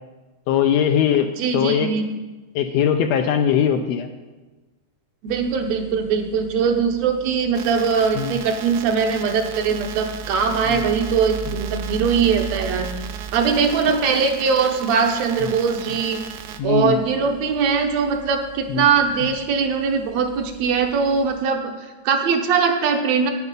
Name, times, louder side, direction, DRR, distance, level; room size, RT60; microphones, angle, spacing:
voice 1, 0.5-1.9 2.5-4.1 8.1-8.3 10.7-10.8 11.5-11.6 16.6-17.0 18.7-18.8, left 8 dB, 80° left, 6 dB, 1.6 m, -20 dB
voice 2, 1.4-2.1 5.2-12.9 13.3-16.2 16.6-23.3, right 5 dB, 75° right, 4 dB, 1.9 m, -21 dB
squeaky auto-rotating fan, 5.3-21.4, right 6 dB, 50° right, 0.9 m, -39 dB
sound 1, 7.5-16.6, right 8 dB, 90° right, 2.1 m, -37 dB
9.2 x 8.2 x 5.3 m, 1.2 s
omnidirectional pair, 3.3 m